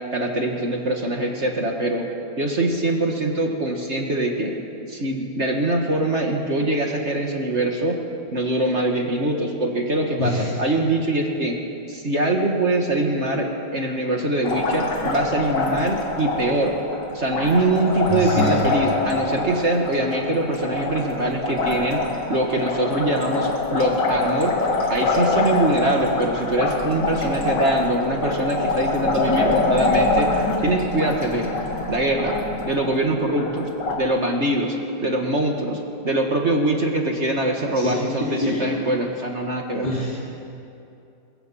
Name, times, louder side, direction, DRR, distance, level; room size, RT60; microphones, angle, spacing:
voice 1, 0.1-2.1 2.4-4.5 4.9-8.0 8.3-11.6 11.9-16.7 17.1-22.0 22.3-24.5 24.9-31.5 31.9-32.4 32.6-33.7 34.0-39.9, right 1 dB, 40° right, 1 dB, 1.9 m, -23 dB
Liquid, 14.4-34.0, left 3 dB, 70° left, 2.6 m, -25 dB
voice 2, 18.1-18.5 37.7-38.8 39.8-40.1, left 1 dB, 25° left, -8 dB, 4.2 m, -25 dB
23.0 x 22.5 x 5.6 m, 2.7 s
omnidirectional pair, 2.0 m